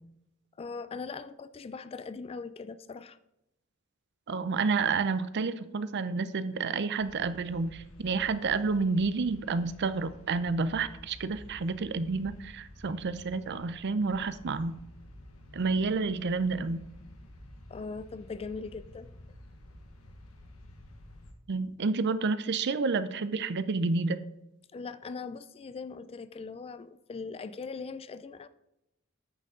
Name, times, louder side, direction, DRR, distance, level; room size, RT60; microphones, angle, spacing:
voice 1, 0.6-3.2 17.7-19.1 24.7-28.5, left 4 dB, 25° left, 0.3 m, -40 dB
voice 2, 4.3-14.7 15.5-16.8 21.5-24.2, right 4 dB, 55° right, 0.5 m, -30 dB
sound 1, 7.0-21.3, left 1 dB, 80° left, 1.3 m, -51 dB
9.0 x 6.6 x 3.7 m
head